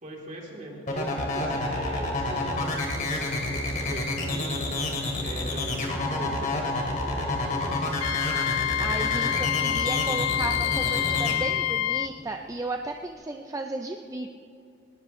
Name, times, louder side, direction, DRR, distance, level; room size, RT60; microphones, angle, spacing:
voice 1, 0.0-4.7 5.2-7.8, right 1 dB, 40° right, -2 dB, 3.3 m, -40 dB
sound 1, 0.9-11.3, left 2 dB, 40° left, 2.7 m, -28 dB
Wind instrument woodwind instrument, 8.0-12.1, left 12 dB, 85° left, 0.4 m, -27 dB
voice 2, 8.5-14.3, right 2 dB, 15° right, 4 dB, 0.5 m, -34 dB
19.5 x 19.0 x 3.2 m, 2.5 s
head